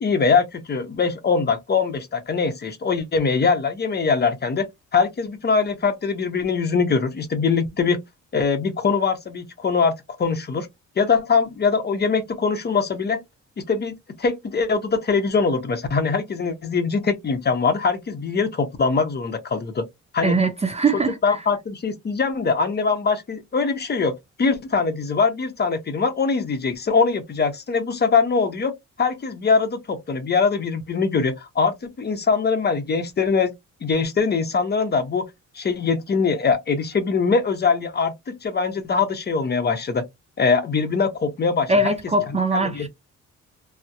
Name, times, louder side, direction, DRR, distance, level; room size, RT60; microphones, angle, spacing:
voice 1, 0.0-4.7 4.9-8.0 8.3-9.9 10.2-10.7 11.0-13.2 13.6-19.9 20.1-20.4 20.9-28.7 29.0-33.5 33.8-35.3 35.5-40.0 40.4-41.9 42.5-42.9, left 5 dB, 35° left, 0.7 m, -22 dB
voice 2, 20.2-21.4 41.7-42.9, right 2 dB, 20° right, 0.4 m, -21 dB
2.6 x 2.0 x 2.2 m
cardioid pair, 90°, 30 cm